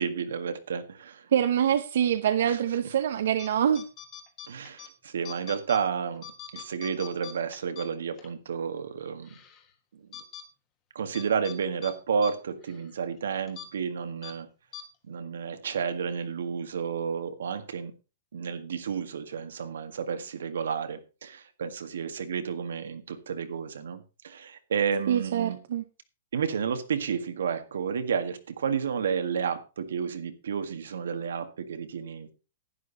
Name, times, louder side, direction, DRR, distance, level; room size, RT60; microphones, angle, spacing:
voice 1, 0.0-1.3 2.5-2.6 4.5-6.3 6.5-9.4 9.9-10.0 11.0-14.5 15.1-17.9 18.3-25.6 26.3-32.3, right 6 dB, 85° right, 1.8 m, -31 dB
voice 2, 1.3-3.8 25.1-25.8, right 9 dB, 55° right, 0.7 m, -25 dB
sound 1, 3.3-3.5 3.7-4.9 5.2-5.8 6.2-8.3 8.7-8.8 9.2-9.6 10.1-10.4 11.1-11.6 11.8-11.9 12.2-12.3 12.6-12.8 13.5-13.7 14.2-14.3 14.7-14.8, left 9 dB, 20° left, 1.4 m, -43 dB
11.0 x 10.0 x 4.1 m
hypercardioid pair, 175°, 0 cm